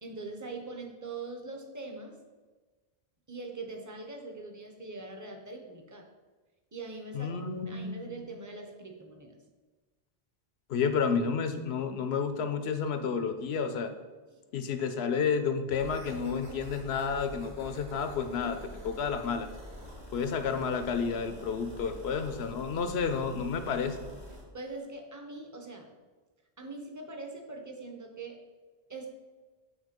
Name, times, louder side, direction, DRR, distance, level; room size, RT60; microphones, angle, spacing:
voice 1, 0.0-2.2 3.3-6.1 6.7-9.4 14.3-14.4 21.9-22.0 24.5-25.9 26.6-28.4 28.9-29.1, right 3 dB, 20° right, 3 dB, 0.8 m, -42 dB
voice 2, 7.1-8.1 10.7-13.9 14.5-18.6 18.8-19.5 20.1-24.0, left 6 dB, 85° left, 9 dB, 0.9 m, -31 dB
sound 1, 15.7-24.4, equal, 50° right, 1.9 m, -46 dB
8.2 x 3.4 x 5.1 m, 1.3 s
omnidirectional pair, 1.0 m